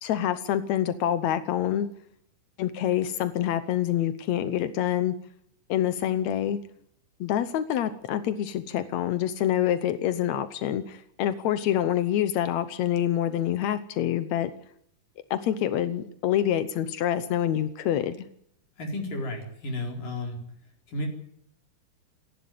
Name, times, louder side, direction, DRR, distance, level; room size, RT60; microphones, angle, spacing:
voice 1, 0.0-1.9 2.6-5.1 5.7-6.6 7.2-14.5 15.3-18.3, left 11 dB, 80° left, 11 dB, 1.6 m, -26 dB
voice 2, 18.8-20.4 20.9-21.1, left 1 dB, 60° left, 2 dB, 5.8 m, -32 dB
28.5 x 11.5 x 9.4 m, 0.69 s
omnidirectional pair, 4.5 m